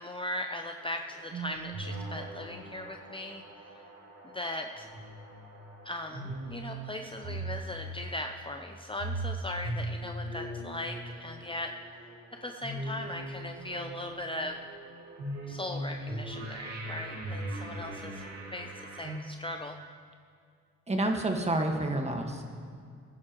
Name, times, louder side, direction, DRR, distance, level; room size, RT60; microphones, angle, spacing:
voice 1, 0.0-3.4 3.8-3.9 4.3-4.9 5.8-11.7 12.4-14.6 15.5-19.7, left 1 dB, 15° left, 4 dB, 0.6 m, -39 dB
sound 1, 0.8-19.2, right 1 dB, 60° right, 2.5 m, -40 dB
voice 2, 20.9-22.4, right 1 dB, 20° right, 3 dB, 1.6 m, -29 dB
20.5 x 10.5 x 3.0 m, 2.3 s
cardioid pair, 90°, 30 cm